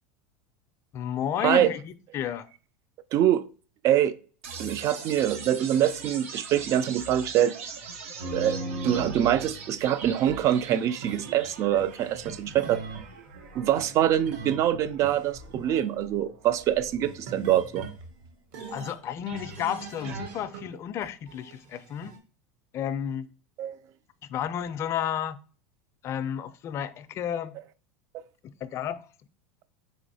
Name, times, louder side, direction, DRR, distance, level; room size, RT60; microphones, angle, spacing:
voice 1, 0.9-2.5 18.7-22.2 22.7-23.3 24.3-25.4 26.0-27.5 28.6-29.1, left 9 dB, 40° left, 0.3 m, -32 dB
voice 2, 3.1-3.4 3.8-4.1 4.6-7.6 8.3-12.8 13.6-17.9 23.6-23.8, right 11 dB, 45° right, 0.3 m, -24 dB
sound 1, 4.4-18.4, right 5 dB, 85° right, 0.8 m, -43 dB
sound 2, 8.2-11.5 11.8-13.1 13.8-14.6 15.0-15.9 17.0-18.0 18.5-20.7 21.0-22.2, right 3 dB, 65° right, 1.1 m, -39 dB
3.9 x 2.9 x 2.7 m
supercardioid pair, 110°, 7 cm